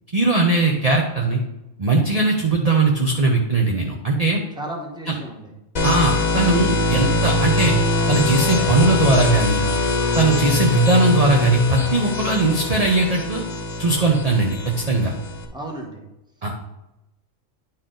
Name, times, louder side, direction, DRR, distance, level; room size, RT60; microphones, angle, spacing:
voice 1, 0.1-1.4 1.8-4.4 5.1-5.2 5.8-7.7 8.1-9.6 10.2-13.4 13.8-15.1 16.4-16.6, right 3 dB, 35° right, 0 dB, 0.7 m, -19 dB
voice 2, 4.5-5.5 15.5-16.0, right 1 dB, 5° right, 0 dB, 1.1 m, -33 dB
sound 1, 5.8-15.4, left 3 dB, 35° left, 0.9 m, -22 dB
10.0 x 4.4 x 3.9 m, 0.94 s
omnidirectional pair, 1.3 m